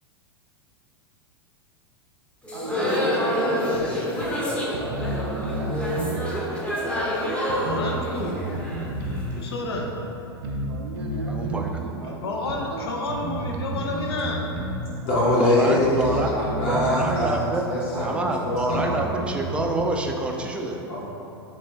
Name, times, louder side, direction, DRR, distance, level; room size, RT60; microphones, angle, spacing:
sound 1, 2.4-9.4, equal, 10° left, 0.8 m, -27 dB
voice 1, 2.5-3.4 4.7-6.9 10.7-13.5 15.4-16.1 16.3-16.9, right 2 dB, 90° right, 0 dB, 0.6 m, -38 dB
sound 2, 3.7-3.8 4.2-4.3 4.7-5.7 6.0-6.2 7.0-7.1 7.5-9.3 9.8-9.9 10.4-10.7 10.9-11.7 12.5-12.6 13.1-14.9 15.2-15.3 15.8-16.7 17.0-17.3 18.0-18.1 18.5-19.9, right 2 dB, 55° right, 0.7 m, -31 dB
voice 2, 7.6-8.4 9.3-9.9 12.2-14.4, left 2 dB, 70° left, 1 dB, 0.7 m, -30 dB
voice 3, 11.3-11.8 15.4-16.3 16.7-20.8, right 2 dB, 10° right, 1 dB, 0.4 m, -27 dB
voice 4, 15.0-16.0 16.2-19.1 20.9-21.0, left 2 dB, 45° left, -6 dB, 1.3 m, -24 dB
6.8 x 3.0 x 2.4 m, 2.9 s
figure-of-eight pair, 95°, 14 cm